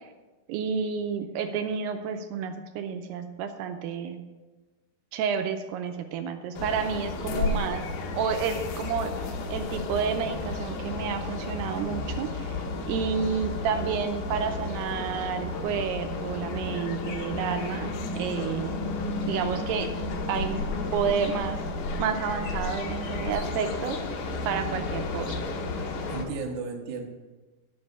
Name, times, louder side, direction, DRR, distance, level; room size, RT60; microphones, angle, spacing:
voice 1, 0.5-4.2 5.1-7.8 8.1-9.1 9.5-12.6 12.9-17.9 18.2-18.9 19.3-19.9 20.3-20.6 20.9-21.6 22.0-24.0 24.5-25.4, right 6 dB, 85° right, 6 dB, 2.6 m, -30 dB
sound 1, 6.6-26.2, left 3 dB, 70° left, 2.7 m, -32 dB
voice 2, 12.6-13.1 26.1-27.1, right 4 dB, 60° right, 1 dB, 2.1 m, -35 dB
10.5 x 5.4 x 6.9 m, 1.2 s
omnidirectional pair, 4.7 m